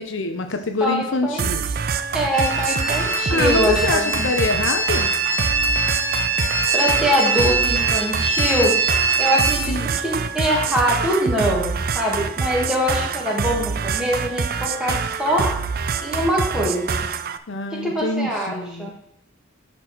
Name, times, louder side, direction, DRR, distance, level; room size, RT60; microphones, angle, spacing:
voice 1, 0.0-1.6 3.3-5.1 9.7-10.0 17.5-18.9, left 3 dB, 65° left, 6 dB, 0.7 m, -25 dB
voice 2, 0.8-1.4 2.1-4.3 6.7-8.7 9.2-15.5 16.0-17.0 17.8-18.9, equal, 5° right, -3 dB, 2.0 m, -23 dB
sound 1, 1.4-17.4, right 5 dB, 45° right, 0.4 m, -26 dB
sound 2, 2.3-9.6, right 3 dB, 75° right, 1.5 m, -23 dB
11.0 x 4.4 x 4.4 m, 0.79 s
head